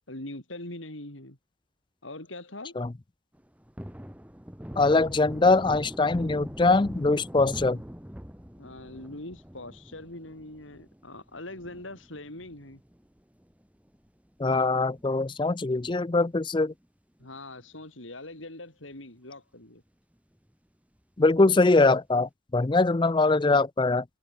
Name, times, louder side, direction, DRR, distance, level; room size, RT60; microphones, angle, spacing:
voice 1, 0.1-1.4 2.0-2.8 8.6-12.8 17.2-19.8, left 2 dB, 85° left, 5.5 m, -42 dB
Thunder, 3.3-14.1 14.5-14.6 14.9-16.4 16.7-16.9 17.2-18.0 18.4-18.5 18.9-19.0 21.3-21.9, equal, 5° right, 1.5 m, -43 dB
voice 2, 4.8-7.8 14.4-16.7 21.2-24.0, left 3 dB, 25° left, 0.5 m, -22 dB
head